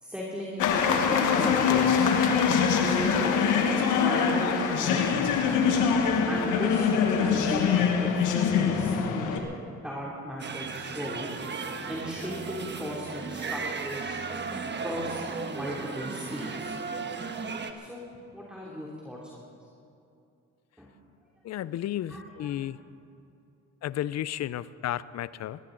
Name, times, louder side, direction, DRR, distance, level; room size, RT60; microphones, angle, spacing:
voice 1, 0.0-2.0 2.7-3.4 4.0-5.8 6.3-9.5 9.8-11.3 11.9-14.1 14.8-15.2 15.5-16.7 17.7-18.0 18.3-19.4 20.8-20.9 22.1-22.6, equal, 5° right, -5 dB, 2.9 m, -36 dB
sound 1, 0.6-9.4, left 6 dB, 90° left, 1.5 m, -24 dB
sound 2, 10.4-17.7, right 4 dB, 35° right, 1.3 m, -35 dB
voice 2, 21.4-22.8 23.8-25.6, left 12 dB, 60° left, 17 dB, 0.6 m, -33 dB
21.0 x 17.0 x 3.9 m, 2.7 s
cardioid pair, 90°, 30 cm